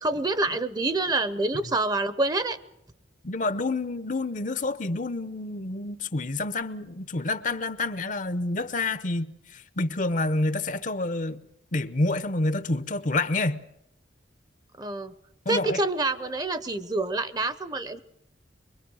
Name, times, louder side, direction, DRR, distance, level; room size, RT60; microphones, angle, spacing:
voice 1, 0.0-2.6 14.8-15.1 15.5-18.0, right 2 dB, 20° right, 0.8 m, -27 dB
voice 2, 3.2-11.4 11.7-13.6 15.5-15.8, left 2 dB, 45° left, 0.8 m, -28 dB
24.0 x 23.0 x 6.3 m
head